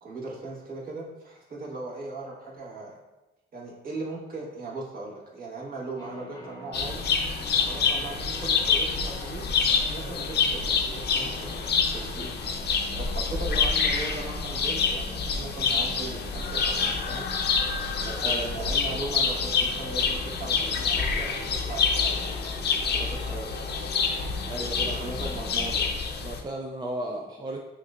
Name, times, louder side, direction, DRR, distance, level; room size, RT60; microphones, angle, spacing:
voice 1, 0.0-3.0 3.5-7.1 7.5-9.5 9.9-12.3 12.9-17.3 18.0-22.3 22.8-23.5 24.8-26.0, right 3 dB, 45° right, -4 dB, 1.3 m, -38 dB
sound 1, 6.0-25.7, left 1 dB, 20° left, 0.8 m, -45 dB
sound 2, 6.7-26.4, left 5 dB, 55° left, 0.6 m, -27 dB
voice 2, 18.2-18.7 24.5-25.0 25.3-25.5 26.2-27.6, right 1 dB, 20° right, 0 dB, 0.4 m, -35 dB
6.0 x 2.4 x 2.5 m, 1.1 s
cardioid pair, 90°, 20 cm